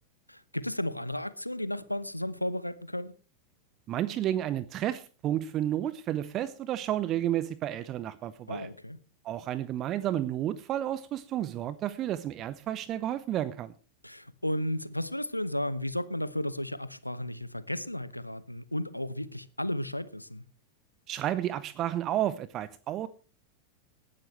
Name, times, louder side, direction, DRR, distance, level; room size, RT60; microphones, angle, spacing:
voice 1, 0.3-3.1 8.5-9.0 14.0-20.4, left 1 dB, 85° left, 0.8 m, -34 dB
voice 2, 3.9-8.7 9.2-13.7 21.1-23.1, right 12 dB, 35° right, 0.7 m, -31 dB
18.5 x 12.0 x 3.2 m
figure-of-eight pair, 90°, 0 cm